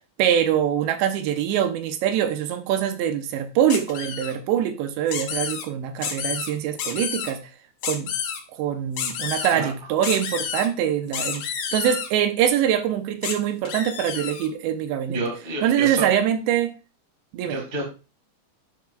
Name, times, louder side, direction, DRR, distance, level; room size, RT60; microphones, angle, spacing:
voice 1, 0.2-7.4 7.8-8.1 8.5-15.2 15.6-16.7 17.3-17.6, right 10 dB, 85° right, 8 dB, 2.9 m, -24 dB
sound 1, 3.7-4.3 5.1-5.6 6.0-6.5 6.8-7.3 7.8-8.4 9.0-9.6 10.0-10.7 11.1-12.1 13.2-13.3 13.7-14.5, left 7 dB, 70° left, 3.1 m, -30 dB
voice 2, 15.1-16.1 17.4-17.9, right 2 dB, 25° right, 0 dB, 1.0 m, -29 dB
11.5 x 5.9 x 2.3 m, 0.31 s
omnidirectional pair, 5.1 m